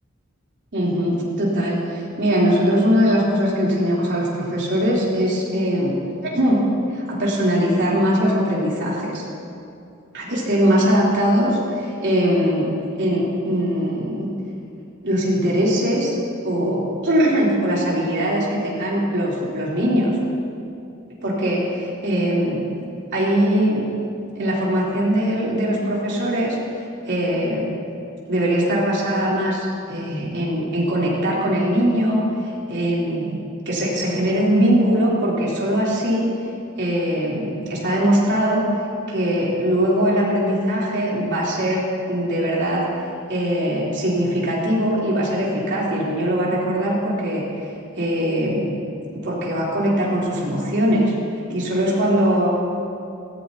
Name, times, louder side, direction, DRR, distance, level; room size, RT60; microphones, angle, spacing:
voice 1, 0.7-6.6 6.9-9.2 10.1-12.7 13.0-14.3 15.0-16.2 16.4-20.2 21.2-22.6 23.1-23.9 24.4-26.6 27.0-27.7 28.3-36.3 36.8-38.6 39.1-42.8 43.3-47.4 47.9-48.7 49.2-51.1 51.5-52.5, equal, 60° right, -6 dB, 3.4 m, -21 dB
17.0 x 15.0 x 2.8 m, 2.6 s
head